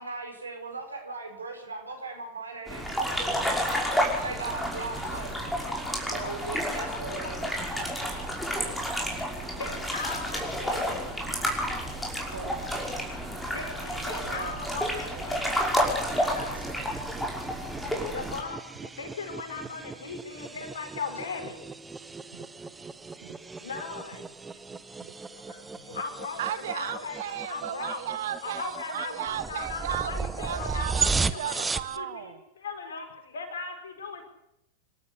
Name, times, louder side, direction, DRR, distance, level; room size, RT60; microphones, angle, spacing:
voice 1, 0.0-5.3 6.1-7.5 12.3-12.6 16.5-16.6, right 3 dB, 75° right, 4 dB, 5.2 m, -39 dB
sound 1, 2.7-18.4, equal, 5° left, 5.6 m, -30 dB
voice 2, 5.0-8.0 9.6-11.1 11.7-11.8 13.2-16.6 18.1-21.6 23.6-24.3 25.3-28.0 28.4-31.6 32.0-34.3, left 4 dB, 65° left, 6 dB, 4.9 m, -39 dB
voice 3, 14.2-15.3 17.9-18.0 22.3-22.5 23.2-23.3 25.0-25.1 26.4-32.4, right 11 dB, 60° right, 14 dB, 1.0 m, -35 dB
sound 2, 15.7-32.0, right 4 dB, 10° right, 1.0 m, -36 dB
26.5 x 12.5 x 8.4 m, 0.82 s
figure-of-eight pair, 90°, 0 cm